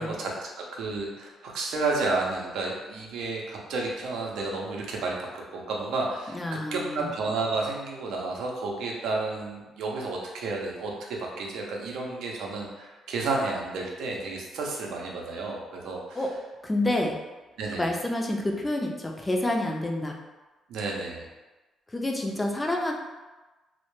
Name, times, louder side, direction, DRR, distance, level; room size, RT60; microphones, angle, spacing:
voice 1, 0.0-6.4 6.7-16.2 17.6-17.9 20.7-21.3, right 3 dB, 80° right, -1 dB, 0.5 m, -31 dB
voice 2, 6.3-7.1 16.1-16.3 16.6-17.2 17.7-20.2 21.9-22.9, left 1 dB, 20° left, 1 dB, 0.4 m, -28 dB
2.1 x 2.1 x 3.0 m, 1.2 s
cardioid pair, 90°, 0 cm